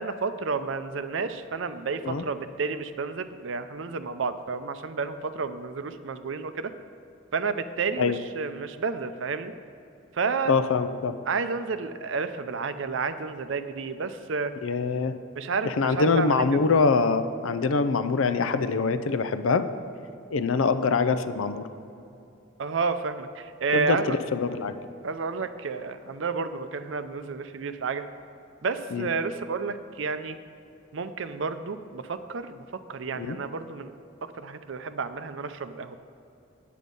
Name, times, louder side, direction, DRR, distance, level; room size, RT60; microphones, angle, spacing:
voice 1, 0.0-6.7 7.3-9.5 10.1-10.5 11.3-14.6 15.4-16.5 22.6-24.2 25.0-28.0 28.6-30.4 30.9-33.9 34.2-36.0, right 4 dB, 70° right, 11 dB, 0.5 m, -31 dB
voice 2, 10.5-11.1 14.6-15.1 15.6-19.7 20.3-21.6 23.7-24.7 28.9-29.1 33.2-33.4, left 4 dB, 85° left, 11 dB, 0.5 m, -24 dB
9.3 x 8.4 x 5.3 m, 2.7 s
head